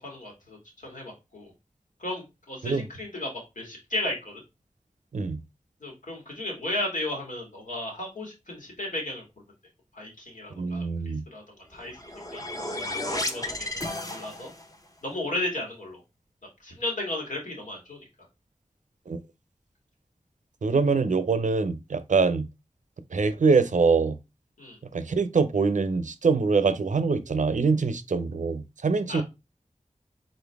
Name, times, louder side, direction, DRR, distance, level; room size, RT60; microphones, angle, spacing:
voice 1, 0.0-1.5 2.0-3.3 3.6-4.4 5.8-9.2 9.9-12.0 12.3-12.4 13.0-14.5 15.0-16.0 16.6-18.0 24.6-24.8 29.1-29.2, left 1 dB, 80° left, 2.0 m, -34 dB
voice 2, 10.6-11.2 19.1-19.2 20.6-22.4 23.1-24.2 24.9-29.2, right 4 dB, 70° right, 0.6 m, -24 dB
sound 1, 11.7-14.7, left 1 dB, 25° left, 0.8 m, -33 dB
3.9 x 3.9 x 3.4 m
wide cardioid pair, 55°, 13 cm